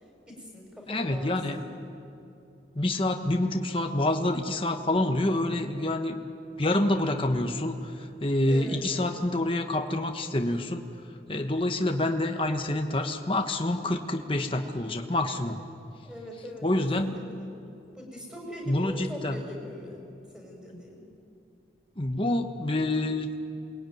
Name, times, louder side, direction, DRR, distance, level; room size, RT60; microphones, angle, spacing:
voice 1, 0.3-1.6 8.5-8.9 13.8-14.0 16.0-17.5 17.9-20.0 20.3-21.1, equal, 5° right, 0 dB, 5.4 m, -41 dB
voice 2, 0.9-1.6 2.7-6.2 6.6-10.8 11.3-15.6 16.6-17.2 18.7-19.4 20.7-20.8 22.0-23.4, left 1 dB, 30° left, 4 dB, 1.2 m, -27 dB
28.0 x 21.5 x 9.3 m, 2.6 s
head